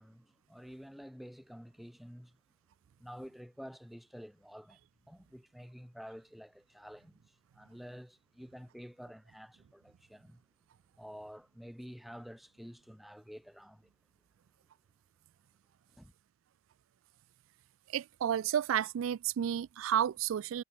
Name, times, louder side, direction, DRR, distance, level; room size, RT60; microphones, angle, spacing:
voice 1, 0.0-2.4 3.0-4.8 5.1-7.2 7.5-10.4 11.0-13.9 15.9-16.1, equal, ahead, 2.1 m, -50 dB
voice 2, 17.9-20.6, right 9 dB, 80° right, 0.3 m, -31 dB
head